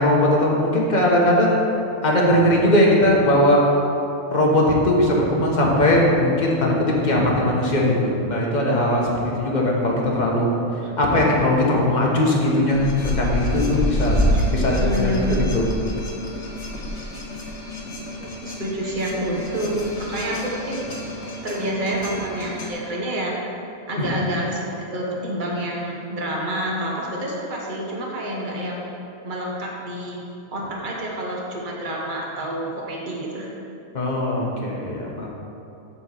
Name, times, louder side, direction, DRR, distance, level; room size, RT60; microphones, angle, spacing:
voice 1, 0.0-1.6 2.0-3.7 4.3-10.5 11.0-15.1 15.5-15.7 24.0-24.1 33.9-35.3, left 1 dB, 30° left, -3 dB, 1.3 m, -19 dB
sound 1, 12.7-22.7, equal, 55° left, 1.4 m, -27 dB
voice 2, 14.7-15.5 18.2-20.9 21.4-23.3 23.9-28.9 29.2-30.2 30.5-33.5, right 1 dB, 35° right, -3 dB, 1.3 m, -28 dB
7.9 x 4.4 x 6.7 m, 2.8 s
omnidirectional pair, 1.5 m